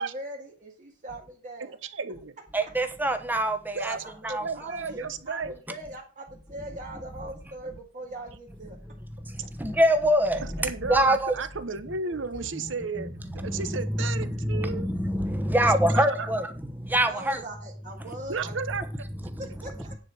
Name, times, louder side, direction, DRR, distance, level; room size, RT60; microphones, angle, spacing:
voice 1, 0.0-1.8 4.3-5.0 5.3-8.8 12.0-12.8 17.1-18.5 19.4-20.0, right 1 dB, 40° right, 1.8 m, -41 dB
voice 2, 1.8-2.3 3.7-5.5 10.6-13.1 13.3-14.9 15.9-16.3 18.3-18.8, right 4 dB, 70° right, 0.9 m, -33 dB
voice 3, 2.5-4.0 4.2-4.4 5.0-5.1 9.2-11.4 12.5-17.4 19.2-19.4, right 1 dB, 10° right, 1.0 m, -25 dB
9.9 x 4.8 x 6.3 m
head